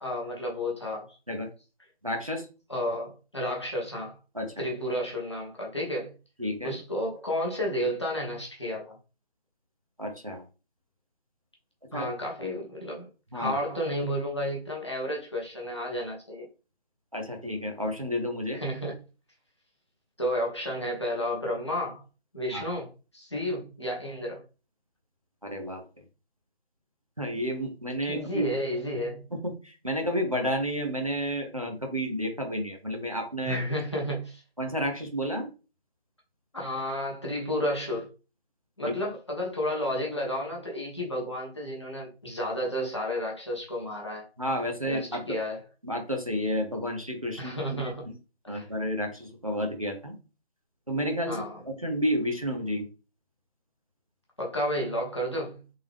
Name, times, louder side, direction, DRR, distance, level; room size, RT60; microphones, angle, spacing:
voice 1, 0.0-1.2 2.7-4.2 4.6-6.1 6.6-9.0 11.9-13.1 13.3-16.5 18.5-19.0 20.2-22.0 22.3-24.4 28.1-29.3 33.4-34.4 36.5-38.1 38.8-44.3 44.8-45.6 47.4-48.1 48.5-48.7 51.3-51.6 54.4-55.6, equal, 25° left, 0.8 m, -31 dB
voice 2, 2.0-2.5 4.3-4.5 6.4-6.8 10.0-10.4 11.9-12.1 13.3-13.6 17.1-18.6 22.5-22.6 25.4-25.8 27.2-28.5 29.3-33.6 34.6-35.5 38.8-38.9 44.4-45.4 45.8-47.5 48.1-48.2 48.5-50.2 50.9-51.4 51.6-52.9, equal, 35° right, 0.6 m, -31 dB
3.6 x 2.8 x 3.4 m
figure-of-eight pair, 165°, 32 cm